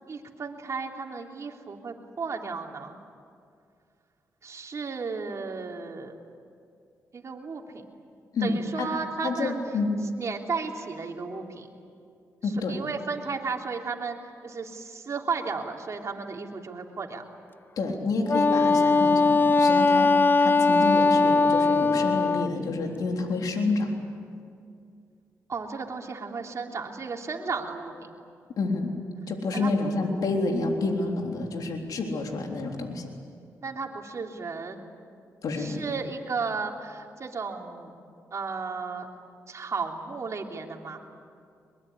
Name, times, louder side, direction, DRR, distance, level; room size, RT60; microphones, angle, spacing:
voice 1, 0.1-3.0 4.4-6.2 7.1-7.8 8.4-9.6 10.1-11.7 12.4-14.2 14.4-17.2 25.5-28.1 29.5-29.7 33.6-34.8 35.6-37.9 38.3-39.1 39.5-41.0, right 4 dB, 50° right, 1 dB, 3.4 m, -34 dB
voice 2, 8.3-8.9 9.2-10.0 12.4-12.8 17.8-20.1 20.4-24.0 28.6-28.9 29.3-33.1 35.4-35.8, left 3 dB, 75° left, 2 dB, 3.7 m, -29 dB
Wind instrument woodwind instrument, 18.3-22.5, left 3 dB, 30° left, 0.6 m, -20 dB
23.5 x 22.5 x 9.9 m, 2.4 s
cardioid pair, 65°, 6 cm